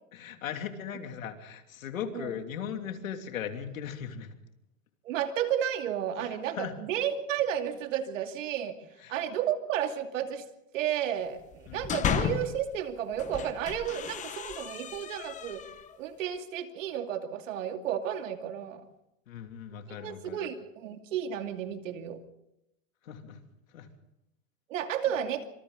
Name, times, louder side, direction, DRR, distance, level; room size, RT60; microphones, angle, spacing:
voice 1, 0.1-4.4 6.6-6.7 9.0-9.1 11.7-11.8 19.3-20.5 23.0-23.4 23.7-23.9, left 8 dB, 90° left, 5 dB, 3.1 m, -38 dB
voice 2, 5.0-8.8 9.1-10.4 10.7-15.6 16.0-18.8 19.9-22.2 24.7-25.4, right 9 dB, 70° right, 6 dB, 2.6 m, -32 dB
sound 1, 11.5-12.6 13.1-16.0, left 9 dB, 20° left, 1.1 m, -34 dB
27.0 x 25.5 x 4.0 m, 0.87 s
supercardioid pair, 145°, 39 cm